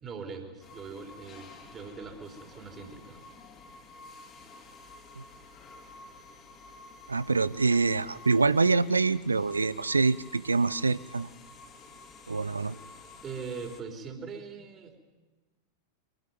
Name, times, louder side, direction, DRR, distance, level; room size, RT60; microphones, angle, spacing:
voice 1, 0.0-3.2 13.2-15.0, right 5 dB, 25° right, 5 dB, 4.1 m, -41 dB
sound 1, 0.6-13.8, left 3 dB, 30° left, 3.1 m, -51 dB
voice 2, 7.1-11.3 12.3-12.8, right 4 dB, 80° right, 19 dB, 0.7 m, -25 dB
24.0 x 19.0 x 9.4 m, 1.2 s
figure-of-eight pair, 90°, 0 cm